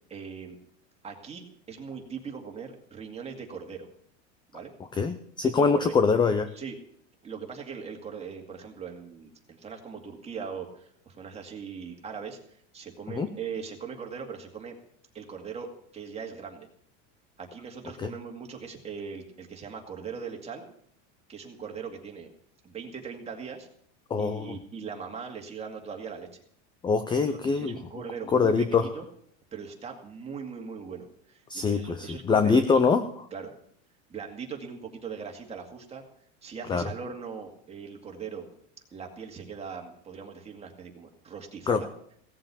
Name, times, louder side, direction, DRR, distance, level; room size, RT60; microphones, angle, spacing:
voice 1, 0.1-0.6 1.0-3.9 4.5-4.7 5.4-5.9 6.5-6.8 7.2-14.7 15.1-16.7 17.4-20.7 21.3-22.3 22.6-23.7 24.2-26.3 27.3-29.0 29.5-32.9 33.3-33.5 34.1-36.0 36.4-38.5 38.9-41.9, right 6 dB, 15° right, 2 dB, 2.3 m, -40 dB
voice 2, 5.0-6.5 13.1-13.3 18.0-18.1 24.1-24.6 26.8-27.8 28.3-28.9 31.5-33.0 36.7-36.8 41.7-41.8, left 5 dB, 10° left, 10 dB, 0.5 m, -23 dB
16.5 x 7.7 x 7.0 m, 0.66 s
supercardioid pair, 140°, 38 cm